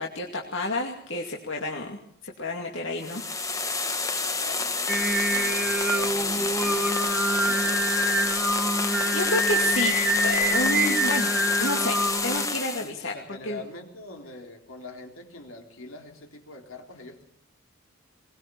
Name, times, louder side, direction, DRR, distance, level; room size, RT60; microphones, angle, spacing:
voice 1, 0.0-2.0 2.2-3.2 8.8-9.9 10.2-12.0 12.2-13.1 13.4-13.6, left 2 dB, 60° left, 0 dB, 2.5 m, -30 dB
sound 1, 3.0-12.9, left 3 dB, 15° left, 1.3 m, -28 dB
voice 2, 4.2-8.1 12.8-17.2, left 2 dB, 75° left, 3 dB, 3.7 m, -43 dB
Singing, 4.9-12.5, right 1 dB, 5° right, 1.2 m, -26 dB
22.0 x 20.5 x 7.0 m, 0.65 s
head